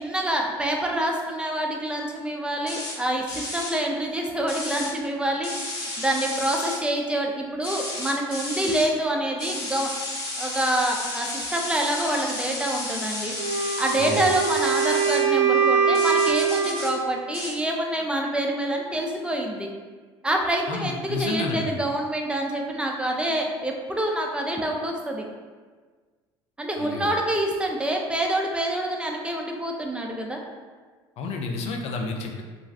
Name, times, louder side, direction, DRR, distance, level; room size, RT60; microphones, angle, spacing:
voice 1, 0.0-9.9 10.4-13.3 13.8-19.7 20.2-25.2 26.6-30.4, right 1 dB, 10° right, 0 dB, 0.5 m, -26 dB
sound 1, 2.7-2.9 3.3-3.7 4.5-4.9 5.4-6.8 7.6-8.9 9.4-15.2 15.9-16.9 17.3-17.5, left 2 dB, 75° left, 1.1 m, -32 dB
Wind instrument woodwind instrument, 13.4-16.9, right 6 dB, 75° right, 0.5 m, -23 dB
voice 2, 20.7-21.7 26.8-27.1 31.2-32.4, left 3 dB, 55° left, 2 dB, 0.5 m, -30 dB
2.4 x 2.3 x 3.2 m, 1.5 s
hypercardioid pair, 65°, 13 cm